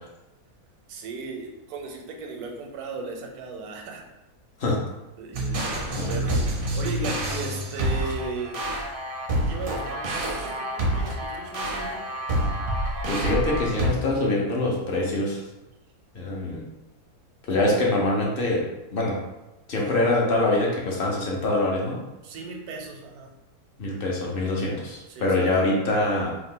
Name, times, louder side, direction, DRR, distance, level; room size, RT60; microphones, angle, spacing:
voice 1, 0.9-4.0 5.2-5.7 6.1-8.6 9.3-12.1 19.8-20.0 22.2-23.3 25.1-25.5, right 3 dB, 85° right, 2 dB, 1.1 m, -36 dB
sound 1, 5.3-13.9, right 1 dB, 60° right, 0.6 m, -28 dB
voice 2, 13.1-15.4 16.1-16.6 17.5-18.6 18.9-19.2 19.7-22.0 23.8-26.3, left 2 dB, 55° left, -3 dB, 0.7 m, -24 dB
2.8 x 2.4 x 3.6 m, 1.0 s
omnidirectional pair, 1.6 m